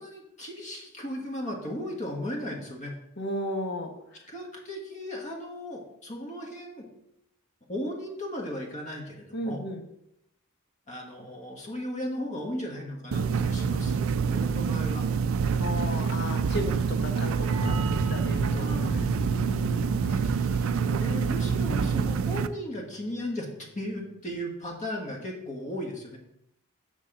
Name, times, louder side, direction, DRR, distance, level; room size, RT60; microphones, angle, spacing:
voice 1, 0.0-2.9 4.1-6.9 7.7-9.6 10.9-13.9 14.2-15.1 18.5-19.4 20.3-23.5 23.7-26.2, left 1 dB, 35° left, 0 dB, 1.4 m, -36 dB
voice 2, 3.2-3.9 9.3-9.8 15.6-16.7 17.0-17.3 18.0-18.7 19.3-19.9, equal, 55° left, 4 dB, 1.1 m, -33 dB
sound 1, 13.1-22.5, right 6 dB, 65° right, 0.4 m, -27 dB
sound 2, 17.5-22.9, equal, 80° left, 3.0 m, -37 dB
6.6 x 6.6 x 3.8 m, 0.79 s
head